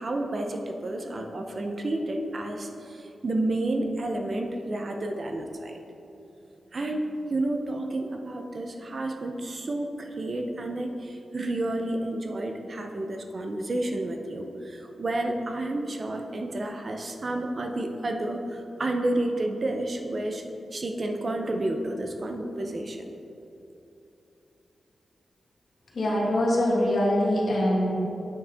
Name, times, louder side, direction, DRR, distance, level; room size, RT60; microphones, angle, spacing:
voice 1, 0.0-5.8 6.7-20.4 20.7-23.1, right 1 dB, 40° right, 3 dB, 0.6 m, -30 dB
voice 2, 25.9-27.9, left 1 dB, 55° left, -4 dB, 1.7 m, -23 dB
8.7 x 6.4 x 3.5 m, 2.9 s
wide cardioid pair, 150°, 0 cm